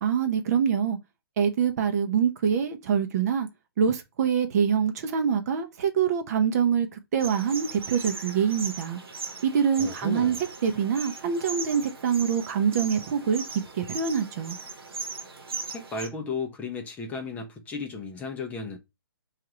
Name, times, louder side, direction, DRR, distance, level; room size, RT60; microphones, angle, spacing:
voice 1, 0.0-1.0 1.4-3.5 3.8-9.0 9.4-10.4 10.6-13.4 13.8-14.6, right 7 dB, 40° right, 0.6 m, -25 dB
sound 1, 7.2-16.1, right 4 dB, 70° right, 1.0 m, -38 dB
voice 2, 9.8-10.4 15.7-18.8, left 4 dB, 10° left, 0.5 m, -34 dB
4.6 x 2.4 x 2.9 m
figure-of-eight pair, 135°, 13 cm